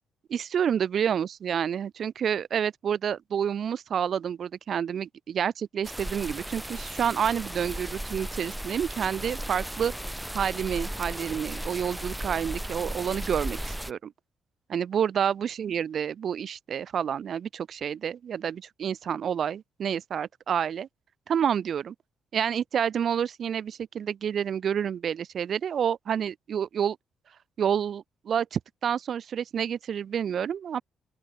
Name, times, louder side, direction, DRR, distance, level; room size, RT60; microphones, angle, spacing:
voice 1, 0.3-9.9 10.3-14.1 14.7-20.9 21.3-21.9 22.3-27.0 27.6-30.8, right 8 dB, 60° right, 0.4 m, -29 dB
sound 1, 5.8-13.9, right 1 dB, 5° right, 1.2 m, -36 dB
open air
cardioid pair, 90°, 0 cm